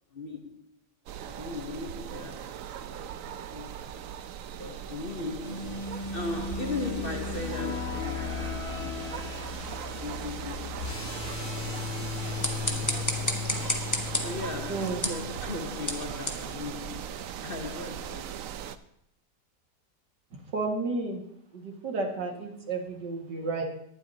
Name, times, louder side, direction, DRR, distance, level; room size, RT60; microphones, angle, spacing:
voice 1, 0.1-0.7 1.3-2.6 2.9-3.1 3.5-4.0 4.6-5.8 6.1-9.3 9.9-10.9 11.4-11.5 12.7-13.0 14.2-18.5, left 3 dB, 40° left, 1.0 m, -38 dB
sound 1, 1.1-18.8, right 9 dB, 65° right, 0.8 m, -39 dB
sound 2, 5.4-15.5, left 6 dB, 60° left, 2.4 m, -36 dB
sound 3, 12.1-17.4, left 1 dB, 10° left, 1.1 m, -34 dB
voice 2, 14.7-15.0 20.3-21.2 21.5-23.6, right 3 dB, 85° right, 2.5 m, -32 dB
19.0 x 11.5 x 2.8 m
omnidirectional pair, 1.8 m